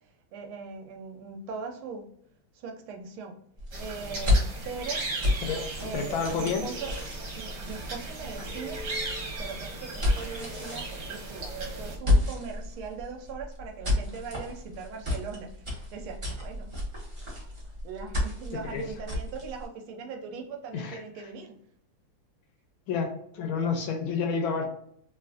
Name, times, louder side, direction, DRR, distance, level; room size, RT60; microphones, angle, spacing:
voice 1, 0.3-2.1 2.5-3.4 3.8-5.1 5.8-8.9 9.4-16.8 17.8-21.6, right 5 dB, 75° right, 3 dB, 1.4 m, -40 dB
sound 1, 3.6-19.7, left 2 dB, 30° right, 0.5 m, -32 dB
sound 2, 3.7-12.0, right 2 dB, 60° right, 1.3 m, -37 dB
voice 2, 5.9-6.6 18.7-18.9 20.7-21.0 22.9-24.7, left 5 dB, 75° left, 3 dB, 1.3 m, -29 dB
3.6 x 2.4 x 2.3 m, 0.67 s
omnidirectional pair, 2.4 m